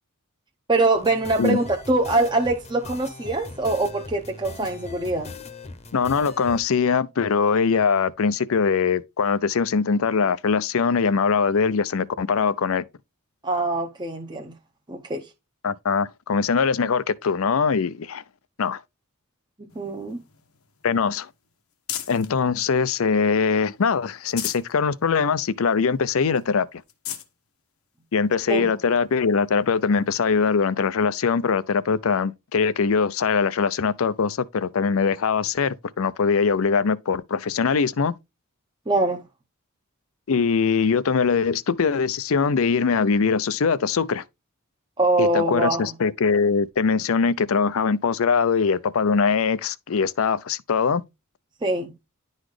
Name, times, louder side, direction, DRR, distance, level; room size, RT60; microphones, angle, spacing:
voice 1, 0.7-5.3 13.4-14.5 14.9-15.2 19.6-20.2 28.5-28.7 38.9-39.2 45.0-45.9 51.6-51.9, right 2 dB, 20° right, 0.8 m, -23 dB
sound 1, 0.9-6.6, left 3 dB, 30° left, 0.9 m, -40 dB
voice 2, 5.9-12.8 15.6-18.2 18.6-18.8 20.8-21.3 22.1-26.7 28.1-38.1 40.3-44.2 45.2-51.0, left 5 dB, 70° left, 0.5 m, -22 dB
sound 2, 19.7-22.4 22.9-23.7 24.1-24.7 25.2-25.3 25.6-25.7 26.4-26.5 26.8-27.3 28.1-28.2 30.0-30.1, left 10 dB, 90° left, 1.1 m, -37 dB
10.5 x 4.0 x 3.2 m
head